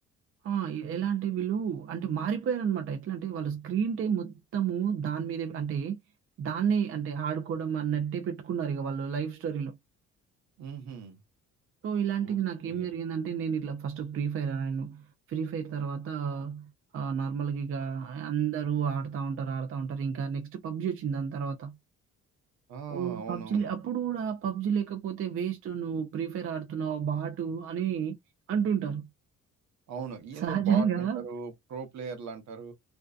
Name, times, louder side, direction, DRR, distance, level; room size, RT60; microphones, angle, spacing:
voice 1, 0.4-6.0 6.4-9.8 11.8-21.8 22.9-28.2 28.5-29.1 30.4-31.2, right 7 dB, 45° right, 0.5 m, -31 dB
voice 2, 10.6-11.2 12.2-12.4 12.6-12.9 22.7-23.7 29.9-32.7, right 5 dB, 65° right, 0.9 m, -39 dB
2.6 x 2.1 x 2.3 m
cardioid pair, 120°, 30 cm